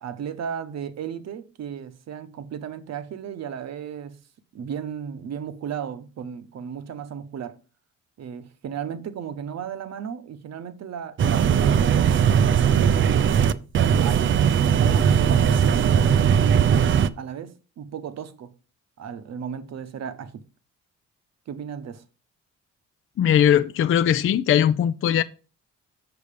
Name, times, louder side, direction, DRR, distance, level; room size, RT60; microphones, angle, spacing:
voice 1, 0.0-4.2 4.5-7.6 8.2-11.9 12.4-13.6 14.0-14.4 14.7-18.5 19.0-20.5 21.5-22.0, right 8 dB, 60° right, 0.9 m, -35 dB
sound 1, 11.2-17.1, right 8 dB, 40° right, 0.5 m, -19 dB
voice 2, 23.2-25.2, left 9 dB, 45° left, 0.5 m, -19 dB
7.0 x 6.3 x 5.0 m
cardioid pair, 90°, 30 cm